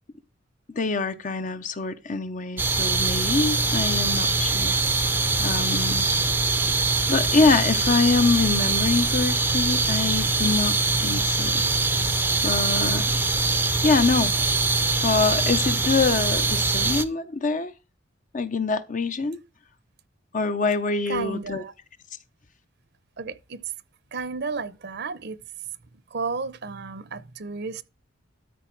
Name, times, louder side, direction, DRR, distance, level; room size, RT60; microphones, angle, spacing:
voice 1, 0.8-4.7 5.4-6.0 7.1-10.7 11.0-11.6 11.9-12.0 12.4-13.0 13.8-14.3 15.0-17.7 18.3-19.4 20.3-21.6, left 4 dB, 40° left, 0.7 m, -24 dB
sound 1, 2.6-17.0, right 3 dB, 10° right, 0.6 m, -23 dB
voice 2, 21.1-21.7 23.2-23.6 24.1-25.4 26.1-27.8, right 4 dB, 55° right, 0.8 m, -32 dB
13.0 x 5.0 x 4.5 m
head